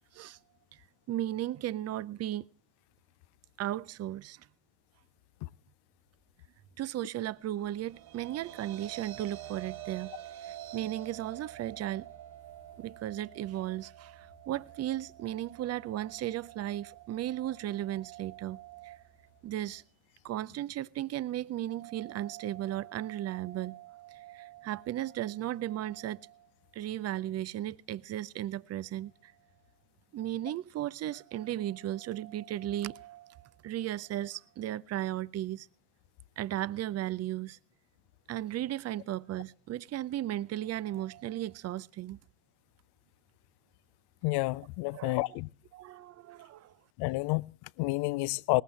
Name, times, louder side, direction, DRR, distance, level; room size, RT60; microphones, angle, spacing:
voice 1, 1.1-2.5 3.6-4.5 6.8-10.1 10.4-12.2 12.8-19.0 19.4-19.8 20.2-26.5 26.7-29.3 30.1-35.7 36.4-37.6 38.3-42.2 44.9-45.2 45.7-46.8, right 13 dB, 30° right, 0.5 m, -36 dB
sound 1, 7.5-19.8, right 12 dB, 55° right, 2.7 m, -48 dB
voice 2, 44.2-45.5 47.0-48.6, left 22 dB, 55° left, 0.6 m, -30 dB
19.5 x 15.0 x 3.2 m
hypercardioid pair, 65°, 49 cm